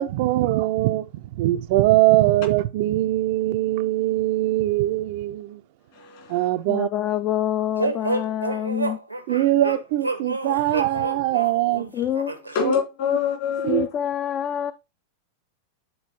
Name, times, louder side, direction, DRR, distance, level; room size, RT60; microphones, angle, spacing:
voice 1, 0.0-5.6 6.3-6.9 9.3-11.9 12.6-12.7 13.6-13.9, right 15 dB, 50° right, 0.4 m, -22 dB
voice 2, 5.9-6.4 12.5-13.9, left 7 dB, 50° left, 3.1 m, -25 dB
voice 3, 6.7-9.0 11.9-12.3 13.6-14.7, left 11 dB, 35° left, 0.4 m, -26 dB
sound 1, 7.8-12.6, right 2 dB, 90° right, 0.8 m, -29 dB
10.0 x 4.2 x 3.0 m
figure-of-eight pair, 90°, 0 cm